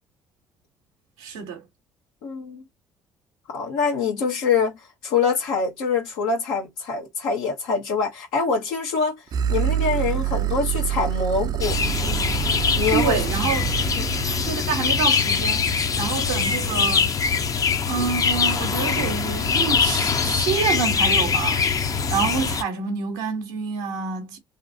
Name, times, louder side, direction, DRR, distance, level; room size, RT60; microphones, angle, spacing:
voice 1, 1.2-1.6 12.7-13.8 14.2-17.2 17.9-24.4, right 6 dB, 85° right, 0.7 m, -28 dB
voice 2, 2.2-2.6 3.5-9.2 9.5-11.8 12.8-13.2 14.0-14.1, left 5 dB, 80° left, 1.1 m, -24 dB
sound 1, 9.3-14.5, right 11 dB, 50° right, 0.4 m, -26 dB
sound 2, 11.6-22.6, left 5 dB, 45° left, 0.6 m, -23 dB
2.8 x 2.6 x 2.5 m
hypercardioid pair, 60°, 8 cm